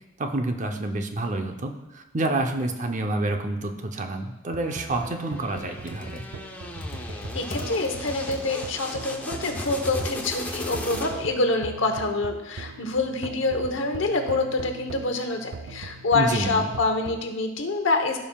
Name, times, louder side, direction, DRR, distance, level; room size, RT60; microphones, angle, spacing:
voice 1, 0.2-6.3 16.1-16.6, right 2 dB, 40° right, 5 dB, 0.7 m, -28 dB
sound 1, 4.5-17.3, right 4 dB, 75° right, 0.4 m, -41 dB
sound 2, 4.6-11.5, left 1 dB, 10° left, 0.8 m, -37 dB
Computer keyboard, 5.7-11.3, left 1 dB, 45° left, 1.1 m, -38 dB
voice 2, 7.3-18.2, left 3 dB, 70° left, 5 dB, 1.0 m, -26 dB
16.0 x 5.5 x 2.3 m, 0.99 s
head